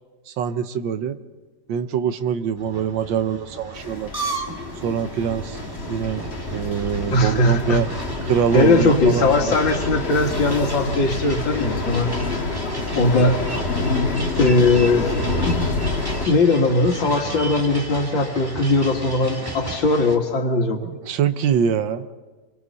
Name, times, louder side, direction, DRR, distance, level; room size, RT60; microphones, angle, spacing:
voice 1, 0.3-1.2 1.7-4.1 4.8-5.6 5.9-7.9 8.2-9.5 20.8-22.1, right 7 dB, 85° right, 11 dB, 1.6 m, -24 dB
sound 1, 2.6-20.2, right 2 dB, 10° right, 1.7 m, -34 dB
sound 2, 3.7-16.3, left 3 dB, 35° left, 1.7 m, -27 dB
voice 2, 7.1-7.8 8.5-12.1 12.5-12.6 12.9-13.4 14.4-15.2 15.5-15.6 16.3-20.8, left 2 dB, 90° left, 3 dB, 2.6 m, -19 dB
28.5 x 23.5 x 4.1 m, 1.3 s
omnidirectional pair, 2.0 m